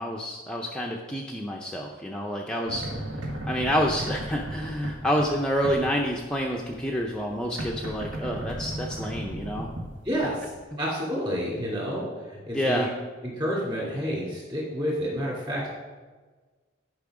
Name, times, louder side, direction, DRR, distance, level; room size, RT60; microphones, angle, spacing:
voice 1, 0.0-9.7 12.5-12.9, equal, 5° left, -1 dB, 0.5 m, -28 dB
sound 1, 2.7-10.6, right 1 dB, 80° right, 1.6 m, -36 dB
voice 2, 10.0-12.9 13.2-15.7, equal, 25° right, -5 dB, 2.6 m, -29 dB
10.5 x 5.4 x 4.9 m, 1.3 s
head